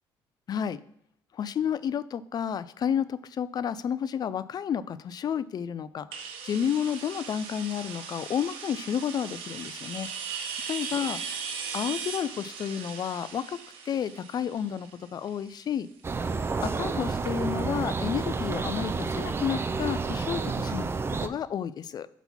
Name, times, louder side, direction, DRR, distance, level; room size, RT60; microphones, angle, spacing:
voice 1, 0.5-0.8 1.3-10.1 10.7-11.2 11.7-13.6 13.9-15.9 16.6-20.9 21.2-22.1, left 8 dB, 45° left, 16 dB, 0.4 m, -31 dB
sound 1, 6.1-15.7, right 6 dB, 85° right, 0.9 m, -38 dB
sound 2, 16.0-21.3, right 4 dB, 25° right, 0.5 m, -30 dB
5.7 x 4.0 x 5.6 m, 0.74 s
cardioid pair, 85°, 9 cm